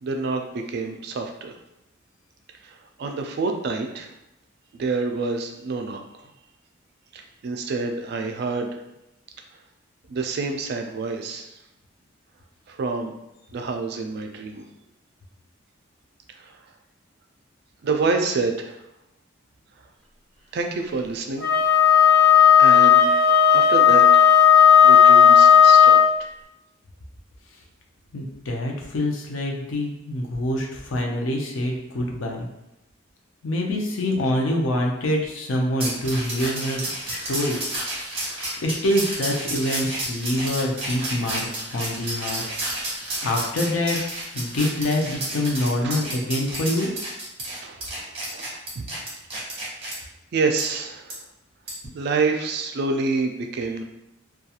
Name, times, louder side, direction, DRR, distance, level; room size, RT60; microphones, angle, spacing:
voice 1, 0.0-1.5 2.6-4.1 4.7-6.0 7.1-8.8 10.1-11.5 12.7-13.1 13.5-14.6 16.4-16.5 17.8-18.8 20.5-21.5 22.6-24.2 24.8-26.3 45.8-46.0 47.6-47.9 48.3-48.4 48.8-48.9 49.3-49.8 50.3-51.1 51.9-53.8, right 4 dB, 55° right, 4 dB, 0.3 m, -27 dB
Wind instrument woodwind instrument, 21.4-26.1, left 8 dB, 5° left, 0.9 m, -13 dB
voice 2, 28.1-32.5 33.4-37.6 38.6-41.5 41.7-42.4 43.2-44.0 44.3-46.9, left 1 dB, 75° left, 0 dB, 0.5 m, -25 dB
sound 1, 35.8-50.0 50.6-50.7 51.1-51.2 51.7-51.9, right 1 dB, 30° right, 0.8 m, -31 dB
2.3 x 2.3 x 2.8 m, 0.87 s
head